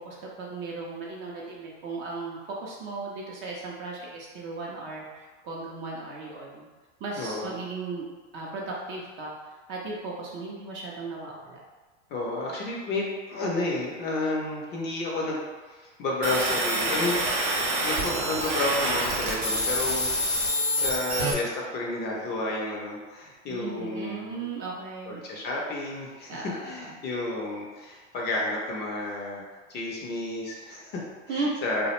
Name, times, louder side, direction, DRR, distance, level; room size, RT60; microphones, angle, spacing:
voice 1, 0.0-6.7 7.0-8.0 8.3-9.3 9.7-11.6 23.5-25.2 26.3-26.9 31.3-31.5, right 3 dB, 35° right, -3 dB, 0.4 m, -36 dB
voice 2, 7.2-7.5 12.1-20.4 20.7-24.4 25.1-29.4 29.7-31.9, left 2 dB, 30° left, -3 dB, 0.4 m, -31 dB
sound 1, 16.2-21.3, right 1 dB, 50° right, 0.8 m, -27 dB
2.3 x 2.0 x 2.9 m, 1.3 s
hypercardioid pair, 120°, 37 cm